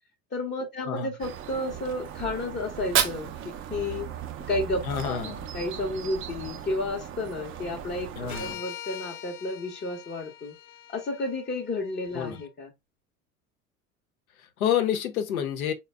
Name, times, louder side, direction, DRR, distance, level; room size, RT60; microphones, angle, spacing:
voice 1, 0.3-4.1 4.5-10.5 10.9-12.7, left 2 dB, 25° left, 0.8 m, -32 dB
sound 1, 1.2-8.6, right 10 dB, 30° right, 0.5 m, -39 dB
Fire, 2.6-4.6, right 9 dB, 50° right, 0.9 m, -30 dB
voice 2, 4.8-5.4 8.2-8.6 12.1-12.4 14.4-15.7, left 9 dB, 70° left, 0.8 m, -28 dB
sound 2, 8.3-12.5, left 12 dB, 50° left, 0.5 m, -43 dB
4.0 x 2.2 x 3.3 m
figure-of-eight pair, 70°, 43 cm